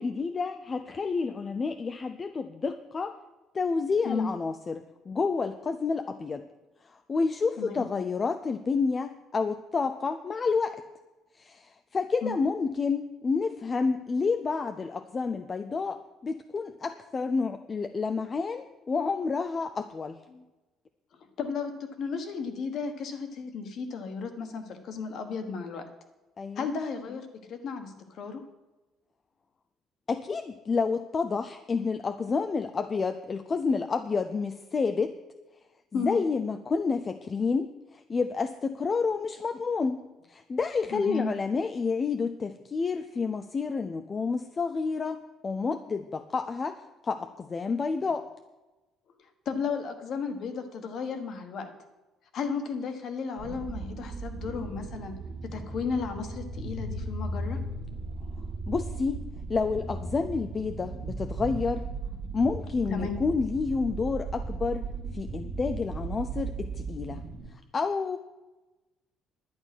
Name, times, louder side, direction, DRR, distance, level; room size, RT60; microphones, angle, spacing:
voice 1, 0.0-3.1 3.5-6.5 6.9-10.8 11.4-20.2 26.4-26.7 30.1-35.1 35.9-48.2 58.7-59.2 59.5-61.8 62.3-64.9 65.1-67.2 67.7-68.2, left 4 dB, 20° left, 8 dB, 0.4 m, -29 dB
voice 2, 21.4-25.8 26.6-28.4 35.9-36.2 40.9-41.3 49.4-51.7 52.3-55.1 55.5-57.6 62.9-63.2, left 5 dB, 45° left, 7 dB, 1.5 m, -34 dB
sound 1, 53.4-67.5, right 3 dB, 50° right, 2.0 m, -36 dB
11.0 x 9.9 x 6.1 m, 1.1 s
cardioid pair, 175°, 0 cm